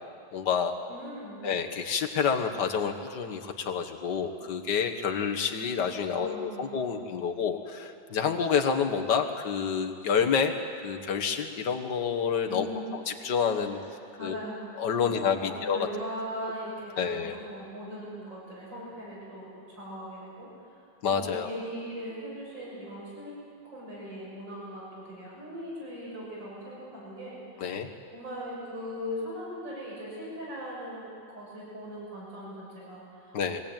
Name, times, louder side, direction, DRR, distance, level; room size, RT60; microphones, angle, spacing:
voice 1, 0.3-0.8 1.4-10.5 10.8-12.7 12.9-13.8 14.2-14.4 14.8-15.9 17.0-17.4 21.0-21.5 27.6-27.9 33.3-33.6, left 6 dB, 60° left, 4 dB, 1.9 m, -28 dB
voice 2, 0.9-1.4 6.2-7.0 12.4-12.9 13.6-13.9 14.2-14.6 15.0-20.8 21.1-23.3 23.6-27.7 28.1-33.6, equal, 65° right, -6 dB, 7.3 m, -40 dB
22.5 x 17.0 x 8.9 m, 2.4 s
omnidirectional pair, 2.1 m